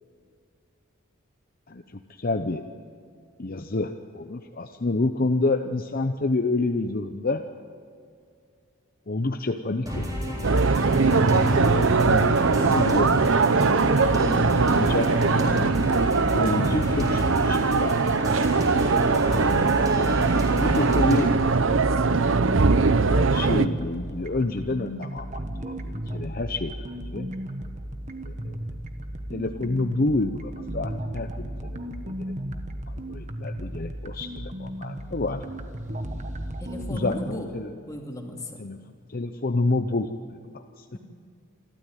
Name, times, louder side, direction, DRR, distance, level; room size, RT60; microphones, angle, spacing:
voice 1, 1.7-2.6 3.4-7.4 9.1-10.4 11.6-13.3 14.7-15.1 16.1-18.0 20.6-21.3 23.1-27.3 28.2-28.6 29.3-32.3 32.9-35.4 36.9-37.7 38.6-38.8 39.1-40.4 40.8-41.0, left 2 dB, 40° left, 6 dB, 0.7 m, -28 dB
sound 1, 9.9-21.3, left 1 dB, 20° right, 3.8 m, -31 dB
sound 2, 10.4-23.7, right 4 dB, 65° right, 0.7 m, -21 dB
sound 3, 20.3-37.4, right 1 dB, 35° right, 1.3 m, -35 dB
voice 2, 36.6-37.5 37.9-38.7, equal, 15° left, 1 dB, 2.6 m, -36 dB
27.5 x 13.0 x 9.1 m, 2.3 s
head